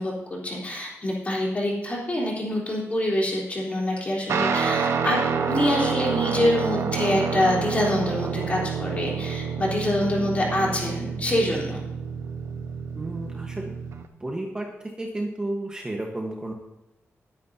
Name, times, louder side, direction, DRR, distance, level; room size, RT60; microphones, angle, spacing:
voice 1, 0.0-5.2 5.5-11.8, left 1 dB, 30° left, -4 dB, 3.9 m, -25 dB
Guitar, 4.3-14.0, right 6 dB, 75° right, 1.2 m, -28 dB
voice 2, 12.9-13.6 14.2-14.7 15.0-16.5, right 1 dB, 15° right, 0 dB, 1.3 m, -31 dB
20.5 x 9.5 x 2.8 m, 0.95 s
wide cardioid pair, 165°, 5 cm